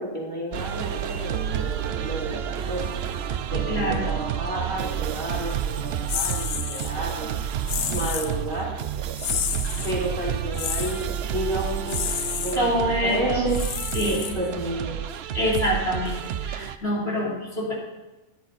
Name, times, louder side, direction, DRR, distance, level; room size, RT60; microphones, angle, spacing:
voice 1, 0.0-2.9 3.2-7.3 7.9-8.8 9.8-12.0 12.4-13.6 14.0-15.0, right 1 dB, 35° right, -5 dB, 3.5 m, -31 dB
sound 1, 0.5-16.8, right 9 dB, 60° right, 0.7 m, -30 dB
voice 2, 3.7-4.1 12.6-13.5 13.9-14.3 15.3-16.2 16.4-17.7, equal, 40° left, -5 dB, 3.6 m, -25 dB
sound 2, 6.1-6.9 7.7-8.3 9.2-10.0 10.5-11.0 11.9-12.6 13.5-14.6, left 10 dB, 70° left, 1.1 m, -30 dB
13.0 x 11.5 x 4.1 m, 1.1 s
omnidirectional pair, 1.6 m